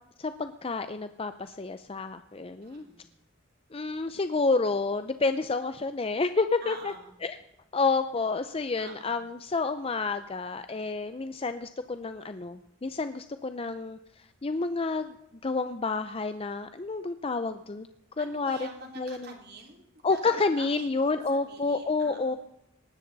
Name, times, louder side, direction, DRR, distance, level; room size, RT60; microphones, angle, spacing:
voice 1, 0.2-2.9 3.7-6.9 7.2-7.4 7.7-14.0 14.4-15.1 15.4-17.9 18.2-18.6 19.0-19.3 20.0-22.4, left 3 dB, 30° left, 10 dB, 0.6 m, -29 dB
voice 2, 2.6-3.1 6.6-7.1 8.8-9.2 18.2-22.4, right 3 dB, 50° right, 2 dB, 3.3 m, -47 dB
19.0 x 13.5 x 4.1 m, 0.86 s
head